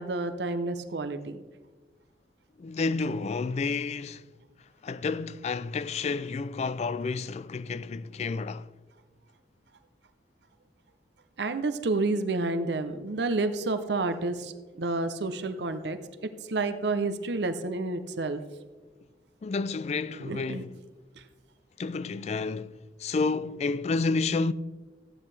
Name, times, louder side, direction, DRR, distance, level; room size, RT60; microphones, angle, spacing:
voice 1, 0.0-1.4 11.4-18.4 20.2-20.6, right 3 dB, 70° right, 0.7 m, -30 dB
voice 2, 2.6-4.3 4.8-8.7 19.4-20.8 21.8-22.7 23.0-24.5, left 4 dB, 35° left, 0.3 m, -30 dB
14.5 x 8.9 x 3.3 m
head